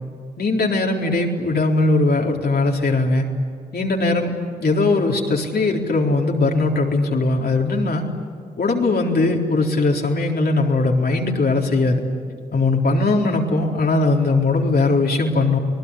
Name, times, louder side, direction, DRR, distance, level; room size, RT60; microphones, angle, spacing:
voice 1, 0.4-3.3 3.7-4.3 4.6-8.1 8.6-12.0 12.5-15.6, left 3 dB, 65° left, 0 dB, 4.0 m, -19 dB
29.0 x 19.5 x 9.9 m, 2.2 s
cardioid pair, 55°, 17 cm